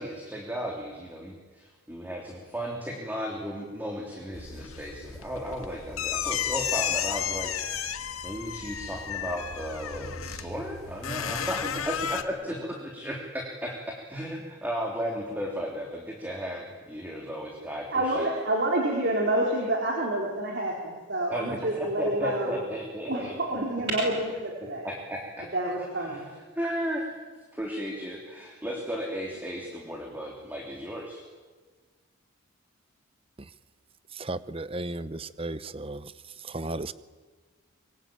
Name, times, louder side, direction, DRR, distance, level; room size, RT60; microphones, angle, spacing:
voice 1, 0.0-7.5 8.2-18.3 21.3-23.3 24.8-25.5 26.0-26.3 26.5-27.1 27.5-31.2, equal, 10° right, 0 dB, 3.3 m, -35 dB
sound 1, 4.3-12.2, left 8 dB, 90° left, 1.8 m, -33 dB
voice 2, 17.9-22.6 23.1-24.9 25.5-26.2, right 1 dB, 50° right, -1 dB, 4.1 m, -28 dB
voice 3, 34.2-36.1 36.5-36.9, right 2 dB, 25° right, 15 dB, 0.8 m, -34 dB
25.5 x 23.0 x 9.1 m, 1.4 s
head